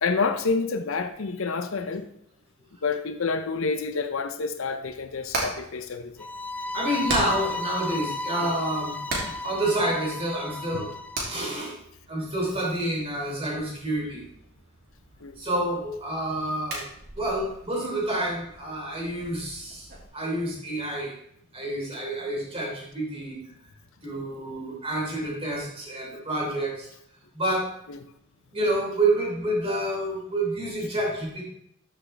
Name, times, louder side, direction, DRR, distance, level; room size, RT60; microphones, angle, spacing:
voice 1, 0.0-2.1 2.8-6.3 8.4-8.5 10.7-10.9 15.2-15.4 27.9-28.0, left 4 dB, 65° left, 0.6 m, -28 dB
Hammer, 4.8-20.1, right 2 dB, 50° right, 2.8 m, -39 dB
sound 1, 6.2-11.2, left 2 dB, 10° left, 0.3 m, -33 dB
voice 2, 6.7-10.9 11.3-11.8 12.1-14.2 15.4-16.8 17.1-21.1 21.5-23.4 24.0-26.9 27.3-27.8 28.5-31.4, right 1 dB, 25° right, 3.3 m, -28 dB
13.5 x 6.3 x 3.4 m
head